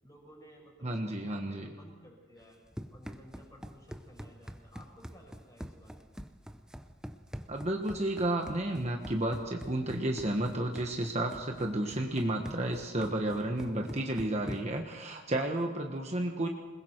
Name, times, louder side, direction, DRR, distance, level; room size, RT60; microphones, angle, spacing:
voice 1, 0.0-2.6 2.9-6.0 16.1-16.4, equal, 15° left, -1 dB, 6.1 m, -55 dB
voice 2, 0.8-1.7 7.5-16.5, right 1 dB, 30° right, 2 dB, 1.3 m, -32 dB
Run, 2.4-14.9, equal, 5° right, 0.7 m, -45 dB
28.5 x 21.0 x 4.6 m, 1.3 s
head